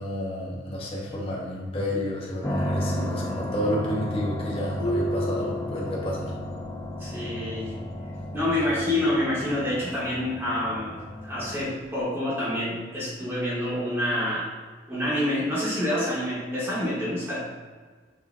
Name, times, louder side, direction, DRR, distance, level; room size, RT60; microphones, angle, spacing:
voice 1, 0.0-6.4, equal, 30° left, -4 dB, 0.8 m, -31 dB
sound 1, 2.4-11.9, equal, 15° left, 0.3 m, -33 dB
sound 2, 4.8-6.5, equal, 45° right, 0.7 m, -31 dB
voice 2, 7.0-7.7 8.3-11.0 11.2-14.5 14.9-17.4, left 1 dB, 15° right, -8 dB, 0.9 m, -27 dB
6.0 x 2.5 x 2.3 m, 1.5 s
head